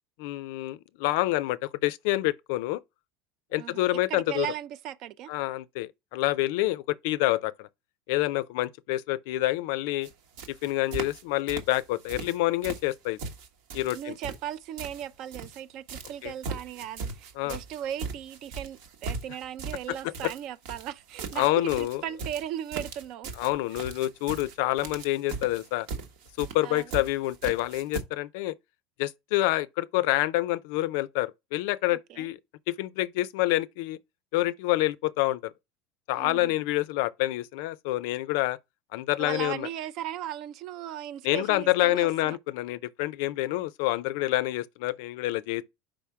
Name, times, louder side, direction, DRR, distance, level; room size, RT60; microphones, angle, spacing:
voice 1, 0.2-2.8 3.5-4.5 5.3-7.7 8.1-10.1 10.5-13.2 13.7-14.1 16.2-16.3 17.4-17.6 21.4-22.0 23.4-25.9 26.4-28.5 29.0-32.4 32.7-34.0 34.3-35.5 36.1-38.6 38.9-39.7 41.2-45.6, left 17 dB, 75° left, 0.4 m, -27 dB
voice 2, 3.6-5.3 13.9-23.3 26.6-26.9 31.9-32.3 36.2-36.5 39.2-42.4, right 11 dB, 55° right, 0.4 m, -37 dB
sound 1, 10.0-10.1 10.4-11.2 11.5-12.4 12.6-15.6 15.9-28.0, right 4 dB, 75° right, 1.1 m, -39 dB
5.1 x 3.5 x 5.6 m
supercardioid pair, 135°, 0 cm